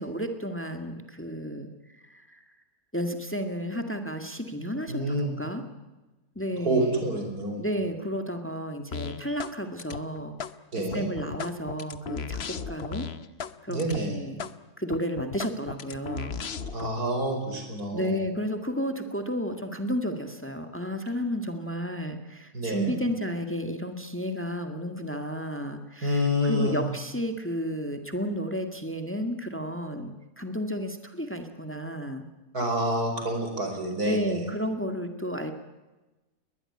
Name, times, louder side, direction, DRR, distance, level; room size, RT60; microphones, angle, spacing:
voice 1, 0.0-2.4 2.9-5.6 6.4-7.1 7.6-10.4 10.7-13.1 13.6-14.4 14.8-16.4 17.9-32.3 34.0-35.5, equal, 10° left, 6 dB, 1.9 m, -32 dB
voice 2, 4.9-5.3 6.6-7.6 10.7-11.1 13.7-14.2 16.7-18.2 22.5-22.9 26.0-26.8 32.5-34.5, equal, 85° right, 5 dB, 5.4 m, -28 dB
sound 1, 8.9-9.5 9.8-10.5 10.9-13.5 13.8-14.0 14.4-14.5 14.9-16.9, left 6 dB, 50° left, 1.1 m, -35 dB
21.0 x 20.0 x 9.8 m, 1.1 s
omnidirectional pair, 1.6 m